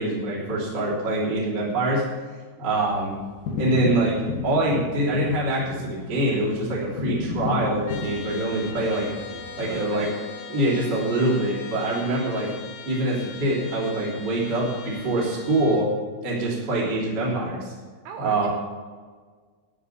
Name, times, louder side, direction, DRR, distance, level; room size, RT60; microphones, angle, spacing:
voice 1, 0.0-2.0 2.6-3.1 3.6-9.1 9.6-10.1 10.5-12.5 12.8-15.9 16.2-17.7 18.2-18.5, right 1 dB, 25° right, -6 dB, 3.4 m, -24 dB
sound 1, 2.7-10.0, left 4 dB, 60° left, 2.0 m, -33 dB
Trumpet, 7.9-15.9, left 7 dB, 90° left, 3.8 m, -42 dB
sound 2, 8.0-12.7, left 4 dB, 65° right, 3.1 m, -43 dB
voice 2, 9.6-10.1 18.0-18.5, right 7 dB, 85° right, 5 dB, 2.4 m, -37 dB
11.0 x 9.7 x 7.2 m, 1.5 s
omnidirectional pair, 5.7 m